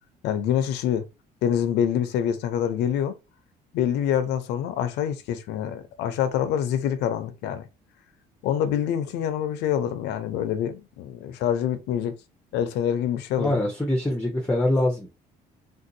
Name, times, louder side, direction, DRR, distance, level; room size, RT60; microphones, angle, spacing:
voice 1, 0.2-1.1 1.4-3.1 3.7-7.7 8.4-12.1 12.5-13.6, left 9 dB, 85° left, 0.6 m, -26 dB
voice 2, 13.4-15.1, left 1 dB, 10° left, 0.7 m, -24 dB
3.6 x 2.6 x 2.7 m
cardioid pair, 110°, 17 cm